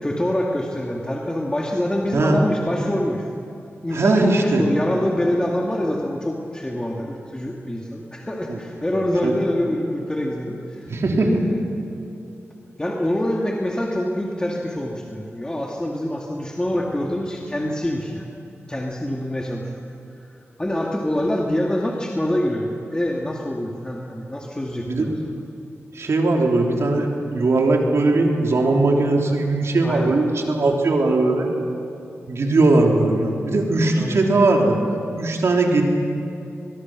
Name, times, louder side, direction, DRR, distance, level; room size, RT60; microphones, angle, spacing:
voice 1, 0.0-3.3 3.8-11.6 12.8-18.3 18.7-19.8 20.6-25.2 29.8-30.1 34.0-34.2, left 1 dB, 15° left, -1 dB, 2.2 m, -25 dB
voice 2, 3.9-4.6 8.5-8.6 9.2-9.3 10.9-11.4 24.9-25.1 26.0-31.5 32.3-34.8 35.2-35.8, right 2 dB, 65° right, 1 dB, 3.4 m, -19 dB
23.0 x 22.0 x 6.2 m, 2.7 s
cardioid pair, 65°, 5 cm